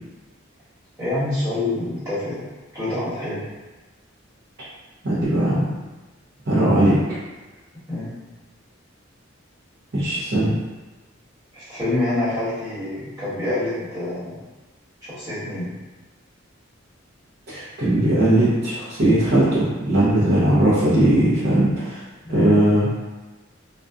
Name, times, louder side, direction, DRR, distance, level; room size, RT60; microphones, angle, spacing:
voice 1, 1.0-2.5 2.7-3.4 7.9-8.1 11.5-14.4 15.0-15.7 22.2-22.6, left 2 dB, 15° right, -13 dB, 1.3 m, -26 dB
voice 2, 5.0-5.7 6.5-7.0 9.9-10.6 17.5-22.0 22.3-22.9, right 1 dB, 55° right, -11 dB, 0.7 m, -18 dB
2.6 x 2.2 x 2.3 m, 1.2 s
head